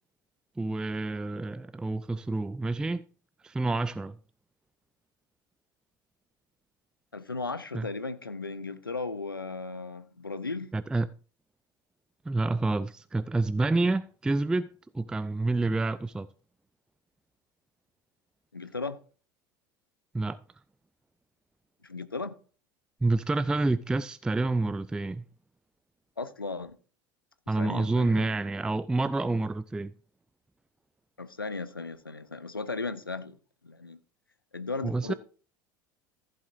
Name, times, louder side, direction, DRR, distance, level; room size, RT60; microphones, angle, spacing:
voice 1, 0.6-3.0 3.4-4.2 7.7-7.9 10.7-11.1 12.3-16.3 20.1-20.4 23.0-25.2 27.5-29.9 34.8-35.1, right 2 dB, 5° right, 0.3 m, -28 dB
voice 2, 7.1-10.7 18.5-19.0 21.8-22.4 26.2-26.8 27.6-28.3 31.2-33.4 33.6-34.0 34.5-35.1, left 3 dB, 90° left, 0.6 m, -36 dB
14.5 x 7.8 x 2.5 m
figure-of-eight pair, 70°, 12 cm